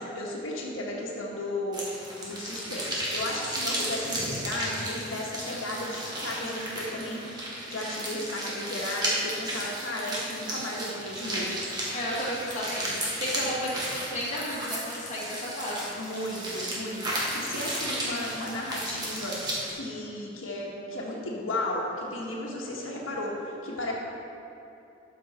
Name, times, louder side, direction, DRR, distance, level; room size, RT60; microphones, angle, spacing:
voice 1, 0.0-1.8 2.2-12.2 12.8-12.9 13.4-13.5 15.9-19.4 19.7-23.9, left 1 dB, 90° left, -3 dB, 1.4 m, -34 dB
sound 1, 1.7-19.7, right 1 dB, 20° right, 1.5 m, -34 dB
voice 2, 11.9-16.2, equal, 35° left, -6 dB, 1.8 m, -33 dB
12.5 x 5.6 x 4.2 m, 2.8 s
head